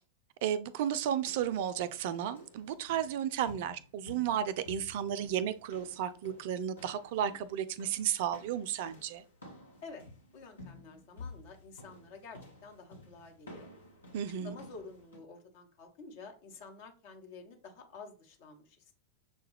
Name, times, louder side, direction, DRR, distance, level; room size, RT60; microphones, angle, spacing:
voice 1, 0.4-9.2 14.1-14.6, right 9 dB, 50° right, 0.3 m, -33 dB
sound 1, 0.9-15.2, left 2 dB, 75° left, 1.3 m, -53 dB
voice 2, 10.3-13.7 14.4-18.9, left 4 dB, 50° left, 1.1 m, -50 dB
6.7 x 2.3 x 3.2 m
figure-of-eight pair, 90°, 0 cm